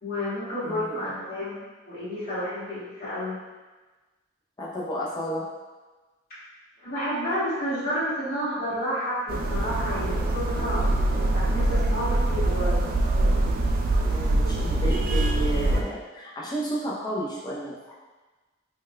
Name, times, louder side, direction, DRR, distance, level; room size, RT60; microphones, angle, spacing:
voice 1, 0.0-3.4 6.8-12.9 14.0-14.2, equal, 50° left, -11 dB, 1.4 m, -31 dB
voice 2, 0.6-1.1 4.6-5.5 14.1-17.9, right 1 dB, 20° left, -5 dB, 0.6 m, -32 dB
sound 1, 9.3-15.8, right 2 dB, 45° right, 0.3 m, -24 dB
3.5 x 3.2 x 2.2 m, 1.2 s
head